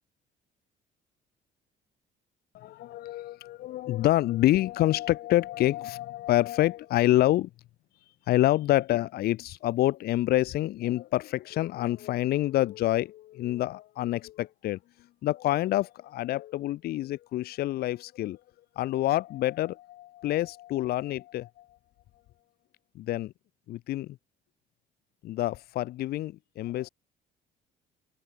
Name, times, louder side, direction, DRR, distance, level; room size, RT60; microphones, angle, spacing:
voice 1, 2.5-7.5 8.3-14.8 15.2-18.4 18.8-21.7 22.9-23.3 23.7-24.2 25.2-26.9, left 15 dB, 70° left, 0.8 m, -27 dB
cardioid pair, 110°, 17 cm